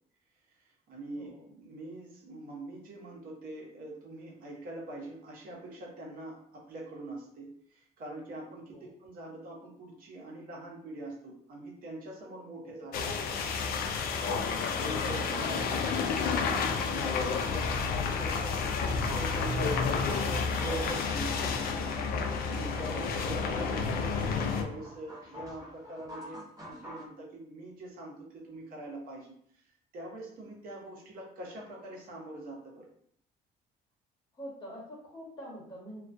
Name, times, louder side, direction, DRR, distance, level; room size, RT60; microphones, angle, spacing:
voice 1, 0.5-13.3 14.8-21.8 22.1-32.8, right 2 dB, 60° right, -2 dB, 0.8 m, -44 dB
voice 2, 1.1-1.5 8.7-8.9 12.6-12.8 34.3-36.0, equal, 25° left, -5 dB, 1.0 m, -46 dB
sound 1, 12.9-24.6, left 5 dB, 60° left, 0.4 m, -30 dB
sound 2, 19.1-27.1, left 1 dB, 20° right, 0.7 m, -47 dB
2.2 x 2.2 x 2.5 m, 0.64 s
cardioid pair, 110°, 17 cm